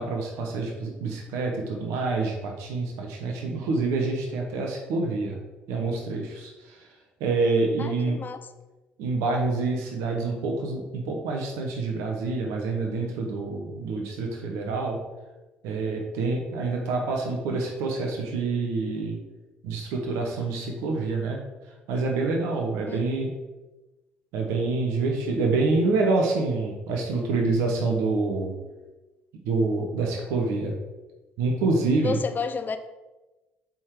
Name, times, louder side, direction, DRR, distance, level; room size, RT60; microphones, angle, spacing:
voice 1, 0.0-5.4 5.7-6.8 7.2-8.2 9.0-15.0 15.6-19.2 19.6-21.4 21.9-23.3 24.3-28.5 29.4-30.7 31.4-32.2, right 3 dB, 85° right, 1 dB, 1.1 m, -27 dB
voice 2, 7.8-8.4 22.9-23.0 32.0-32.8, left 5 dB, 40° left, 9 dB, 0.7 m, -30 dB
7.4 x 3.9 x 4.8 m, 1.1 s
supercardioid pair, 65°, 5 cm